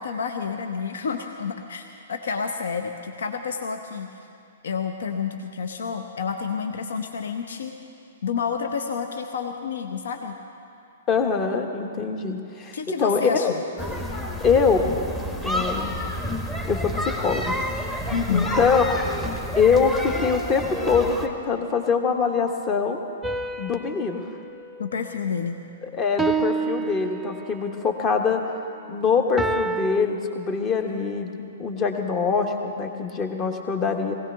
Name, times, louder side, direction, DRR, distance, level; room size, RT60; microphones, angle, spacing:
voice 1, 0.0-4.1 4.6-7.7 8.2-10.4 12.7-13.6 18.1-18.5 24.8-25.6, left 6 dB, 65° left, 6 dB, 0.8 m, -29 dB
voice 2, 11.1-13.5 14.4-14.9 15.4-15.9 16.7-17.6 18.0-19.1 19.6-23.0 23.6-24.2 25.8-28.4 28.9-34.1, left 5 dB, 25° left, 5 dB, 1.4 m, -23 dB
sound 1, 13.8-21.3, left 1 dB, 10° left, 1.3 m, -29 dB
sound 2, 23.2-25.6 26.2-27.7 29.4-30.0, right 4 dB, 5° right, 0.5 m, -29 dB
20.0 x 17.0 x 3.5 m, 2.6 s
figure-of-eight pair, 115°, 0 cm